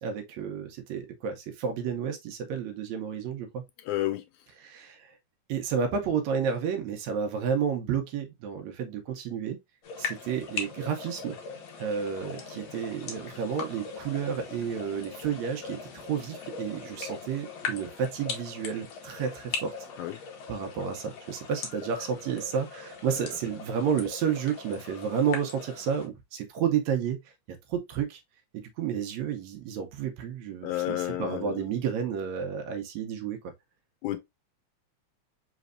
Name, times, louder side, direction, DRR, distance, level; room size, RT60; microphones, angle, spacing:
voice 1, 0.0-3.6 4.6-5.2 5.5-9.6 10.0-11.4 11.8-19.7 20.5-27.2 27.5-28.2 28.5-33.4, right 7 dB, 75° right, 1.9 m, -31 dB
voice 2, 3.8-4.2 20.0-20.2 30.6-31.7 34.0-34.2, left 14 dB, 90° left, 2.1 m, -31 dB
sound 1, 9.8-26.1, left 5 dB, 65° left, 2.0 m, -40 dB
5.1 x 3.1 x 2.5 m
omnidirectional pair, 3.4 m